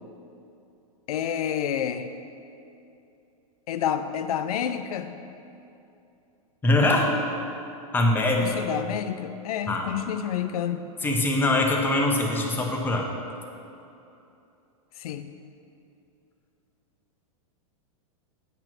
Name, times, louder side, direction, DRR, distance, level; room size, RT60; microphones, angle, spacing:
voice 1, 1.1-2.1 3.7-5.1 8.4-10.9 15.0-15.3, left 9 dB, 80° left, 9 dB, 0.5 m, -29 dB
voice 2, 6.6-7.1 7.9-8.6 9.7-9.9 11.0-13.1, left 2 dB, 10° left, 0 dB, 0.7 m, -22 dB
8.5 x 2.9 x 5.9 m, 2.7 s
supercardioid pair, 135°, 19 cm